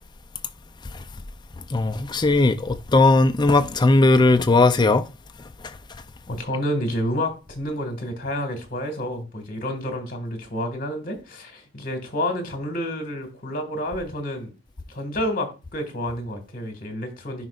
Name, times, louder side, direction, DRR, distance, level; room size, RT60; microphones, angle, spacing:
voice 1, 1.7-5.1, left 2 dB, 25° left, 0.4 m, -18 dB
voice 2, 6.3-14.5 14.9-17.5, left 1 dB, 45° left, 1.7 m, -29 dB
11.0 x 5.1 x 2.4 m
head